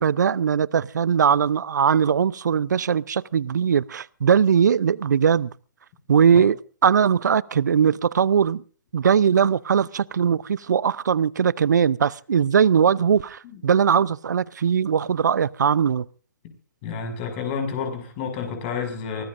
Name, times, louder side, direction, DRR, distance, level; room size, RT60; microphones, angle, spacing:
voice 1, 0.0-5.5 6.1-6.6 6.8-8.6 8.9-16.1, right 7 dB, 65° right, 0.7 m, -20 dB
voice 2, 16.8-19.2, left 6 dB, 35° left, 6.3 m, -30 dB
24.0 x 19.0 x 2.6 m
figure-of-eight pair, 130°, 10 cm